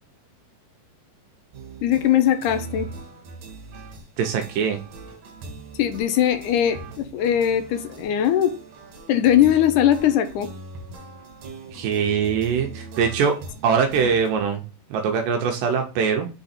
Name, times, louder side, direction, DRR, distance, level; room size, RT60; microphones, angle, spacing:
sound 1, 1.5-14.3, right 3 dB, 60° right, 2.3 m, -40 dB
voice 1, 1.8-2.9 5.8-8.5 9.1-10.5 14.0-14.1, left 10 dB, 75° left, 9 dB, 2.0 m, -20 dB
voice 2, 4.2-4.8 11.7-13.4 13.6-14.6 14.9-16.3, right 6 dB, 80° right, 3 dB, 2.3 m, -22 dB
5.9 x 3.9 x 4.2 m, 0.33 s
omnidirectional pair, 3.9 m